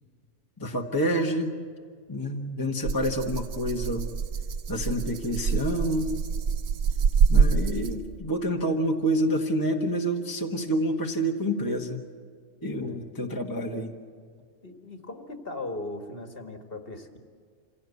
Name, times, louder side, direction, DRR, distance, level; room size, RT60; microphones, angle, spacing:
voice 1, 0.6-1.5 2.1-4.1 4.7-6.1 7.3-12.0 12.6-13.9, equal, 15° left, 1 dB, 1.4 m, -28 dB
Rattle (instrument), 2.8-8.2, right 6 dB, 60° right, 0.9 m, -25 dB
voice 2, 14.6-17.2, left 2 dB, 45° left, 5 dB, 1.9 m, -38 dB
27.0 x 16.5 x 8.3 m, 2.1 s
omnidirectional pair, 1.4 m